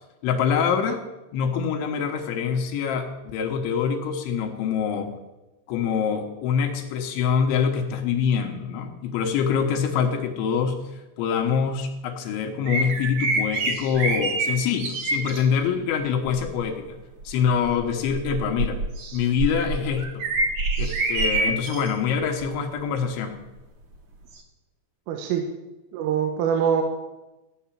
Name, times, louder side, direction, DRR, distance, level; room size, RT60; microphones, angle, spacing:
voice 1, 0.2-1.0 1.3-5.1 5.7-10.8 11.2-17.0 17.2-18.8 19.1-20.2 20.8-23.4, left 7 dB, 75° left, 4 dB, 3.3 m, -25 dB
sound 1, 12.7-15.4 16.2-16.6 17.2-21.9 22.4-22.6 24.4-24.5, right 2 dB, 60° right, 2.1 m, -26 dB
voice 2, 25.1-25.5 25.9-26.8, right 8 dB, 80° right, 3 dB, 3.7 m, -23 dB
15.0 x 9.4 x 7.3 m, 1.0 s
omnidirectional pair, 5.9 m